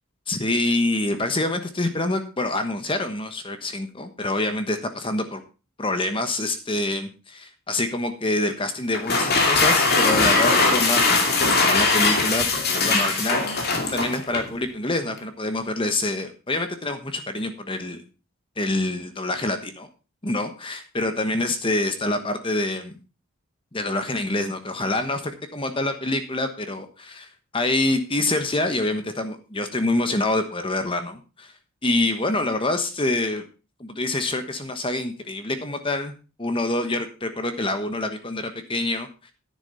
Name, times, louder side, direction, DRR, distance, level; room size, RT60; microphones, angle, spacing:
voice 1, 0.3-5.4 5.8-18.0 18.6-19.9 20.2-22.9 23.7-31.5 31.8-33.4 33.8-36.1 36.4-39.3, left 2 dB, 25° left, 8 dB, 1.1 m, -26 dB
sound 1, 8.9-14.5, left 3 dB, 45° left, 2.5 m, -20 dB
10.5 x 9.8 x 4.1 m, 0.32 s
head